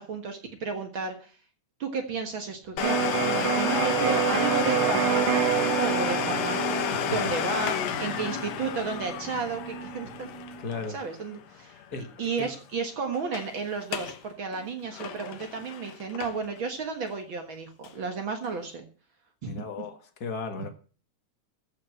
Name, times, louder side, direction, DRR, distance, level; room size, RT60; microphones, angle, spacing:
voice 1, 0.0-1.3 1.8-10.3 10.9-11.8 12.2-18.8 19.4-19.9, right 5 dB, 50° right, 1.9 m, -33 dB
Domestic sounds home sounds, 2.8-12.2 12.5-12.6 13.1-13.5 13.8-14.2 14.5-16.6 17.1-17.2 17.8-17.9, left 9 dB, 65° left, 2.1 m, -31 dB
Electric guitar, 2.8-10.6, right 9 dB, 80° right, 2.5 m, -29 dB
voice 2, 10.6-11.0 11.9-12.1 12.4-12.5 19.4-20.7, left 4 dB, 40° left, 1.5 m, -35 dB
14.5 x 5.7 x 7.8 m
omnidirectional pair, 3.5 m